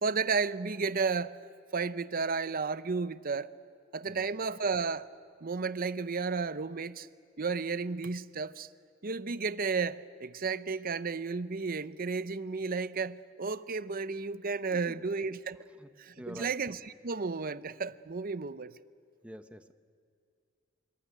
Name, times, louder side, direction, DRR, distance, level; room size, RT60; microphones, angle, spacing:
voice 1, 0.0-1.4 1.7-3.5 3.9-5.1 5.4-7.1 7.4-8.7 9.0-15.6 16.0-18.7, right 4 dB, 45° right, 14 dB, 0.7 m, -33 dB
voice 2, 4.1-4.4 14.7-15.0 15.8-16.5 19.2-19.7, equal, 5° right, 9 dB, 1.0 m, -47 dB
25.5 x 22.0 x 9.4 m, 2.3 s
head